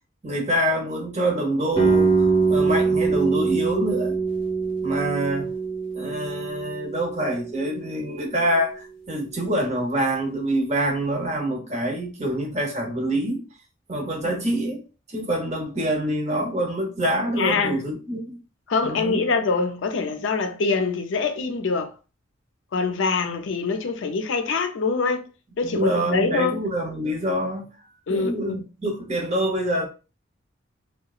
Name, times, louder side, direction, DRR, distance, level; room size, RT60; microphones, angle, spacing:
voice 1, 0.2-4.2 4.8-5.5 5.9-13.4 13.9-14.8 15.1-18.4 18.8-19.2 25.6-27.7 28.1-29.9, right 1 dB, 35° right, 0.8 m, -26 dB
sound 1, 1.8-7.5, right 4 dB, 25° left, 0.7 m, -23 dB
voice 2, 17.4-17.8 18.7-21.9 22.7-25.3 25.6-26.6 28.1-28.6, left 4 dB, 75° left, 0.5 m, -24 dB
2.8 x 2.2 x 2.3 m
head